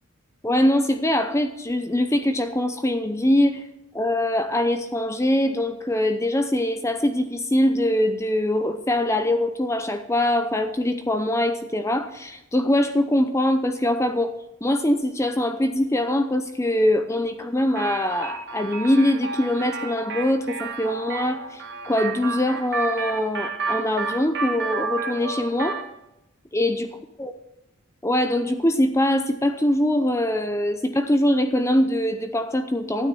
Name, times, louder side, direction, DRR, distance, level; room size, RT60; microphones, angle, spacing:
voice 1, 0.4-3.7 3.9-14.3 14.6-25.8 26.5-26.9 27.2-27.3 28.0-33.1, left 1 dB, 15° left, 8 dB, 0.6 m, -23 dB
sound 1, 17.7-25.9, right 4 dB, 55° right, 1.9 m, -31 dB
12.0 x 9.6 x 5.5 m, 0.91 s
head